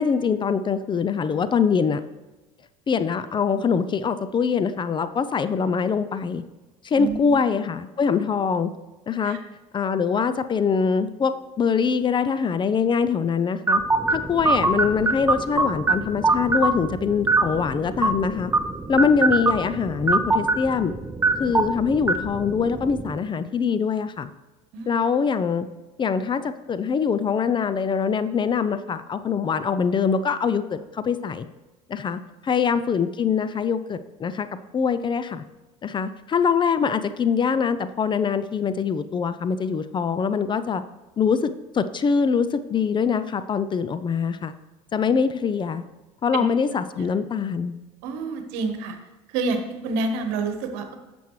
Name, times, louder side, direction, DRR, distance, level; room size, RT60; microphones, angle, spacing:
voice 1, 0.0-2.0 2.9-6.4 6.8-8.7 9.1-9.4 9.7-13.8 14.1-18.5 18.9-20.9 21.4-24.3 24.9-25.7 26.0-31.5 31.9-34.5 34.7-35.4 35.8-40.8 41.2-44.5 44.9-45.8 46.2-47.7, left 6 dB, 30° left, 12 dB, 0.5 m, -23 dB
voice 2, 6.9-7.4 9.2-9.4 24.7-24.9 46.3-46.4 48.0-49.0 49.3-50.9, right 3 dB, 70° right, 6 dB, 1.3 m, -28 dB
sound 1, 13.7-23.2, right 3 dB, 15° right, 0.7 m, -24 dB
10.5 x 7.1 x 3.2 m, 1.1 s
supercardioid pair, 85°, 16 cm